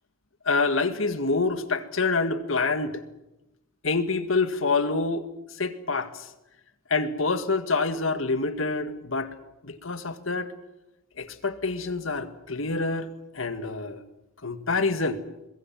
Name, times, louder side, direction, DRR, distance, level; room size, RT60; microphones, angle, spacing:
voice 1, 0.5-3.0 3.8-5.2 5.6-6.3 6.9-9.3 9.6-10.5 11.2-13.1 13.3-14.0 14.4-15.2, left 3 dB, 75° left, 10 dB, 1.9 m, -26 dB
23.5 x 21.5 x 7.6 m, 0.92 s
head